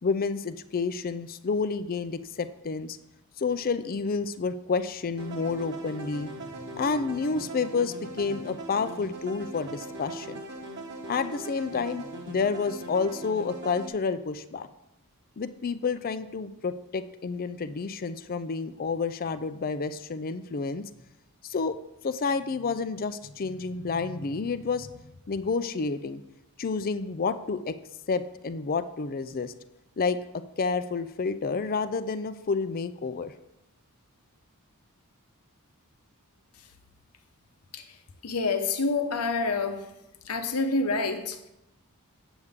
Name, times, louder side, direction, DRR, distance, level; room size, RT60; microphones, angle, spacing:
voice 1, 0.0-3.0 3.4-6.3 6.7-10.4 11.1-14.7 15.4-20.8 21.4-21.8 22.0-26.2 26.6-27.7 28.1-29.5 30.0-30.2 30.6-33.3, left 4 dB, 40° left, 0.5 m, -29 dB
sound 1, 5.2-13.9, right 2 dB, 50° right, 1.3 m, -40 dB
voice 2, 38.2-39.9 40.2-41.5, left 3 dB, 85° left, 0.9 m, -28 dB
8.1 x 8.0 x 3.6 m
head